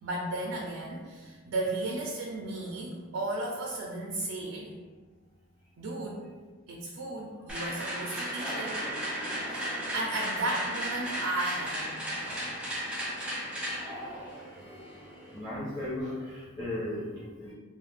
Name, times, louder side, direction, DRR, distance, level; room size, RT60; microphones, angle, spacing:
voice 1, 0.0-4.8 5.8-6.3 6.7-8.9 9.4-12.5, right 2 dB, 75° right, -1 dB, 0.4 m, -35 dB
sound 1, 7.5-15.5, equal, 5° right, 0.4 m, -35 dB
voice 2, 15.3-17.5, left 1 dB, 20° left, -12 dB, 0.8 m, -36 dB
2.3 x 2.1 x 3.3 m, 1.4 s
head